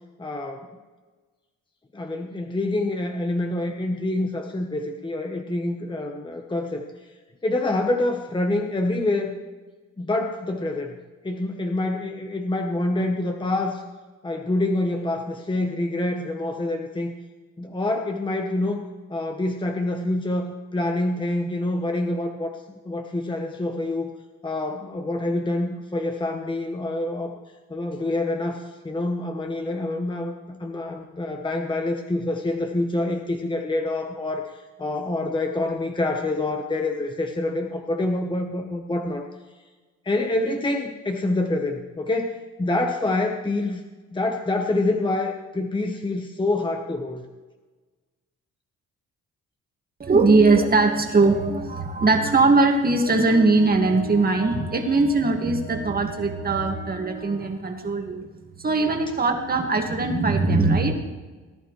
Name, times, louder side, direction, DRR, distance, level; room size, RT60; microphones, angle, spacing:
voice 1, 0.2-0.7 1.9-6.8 7.4-9.3 10.0-11.0 11.2-13.8 14.2-17.1 17.6-18.8 19.1-22.6 22.8-24.1 24.4-27.3 27.7-39.3 40.0-43.8 44.1-47.3, left 2 dB, 15° left, 3 dB, 1.1 m, -26 dB
voice 2, 50.0-58.3 58.6-60.9, right 3 dB, 30° right, 3 dB, 2.0 m, -20 dB
18.5 x 11.0 x 3.3 m, 1.3 s
cardioid pair, 90°, 30 cm